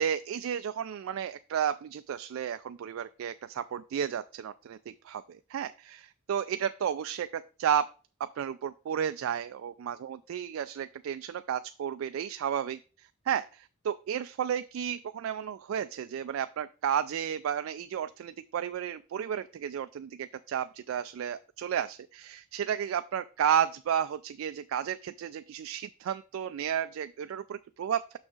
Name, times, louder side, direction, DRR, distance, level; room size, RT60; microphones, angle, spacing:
voice 1, 0.0-7.9 8.2-28.2, right 9 dB, 75° right, 11 dB, 0.3 m, -32 dB
6.3 x 5.8 x 3.8 m, 0.36 s
head